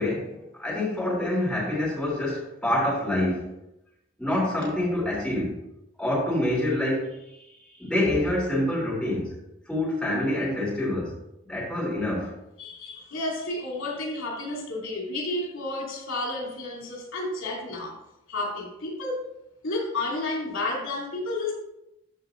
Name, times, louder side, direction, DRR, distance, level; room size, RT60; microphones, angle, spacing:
voice 1, 0.0-3.5 4.2-5.6 6.0-9.3 9.7-11.1 11.4-12.3, left 1 dB, 5° left, -7 dB, 3.3 m, -27 dB
voice 2, 12.6-18.0 18.3-19.3 19.6-21.5, left 2 dB, 85° left, -1 dB, 2.6 m, -31 dB
13.0 x 4.5 x 3.8 m, 0.89 s
head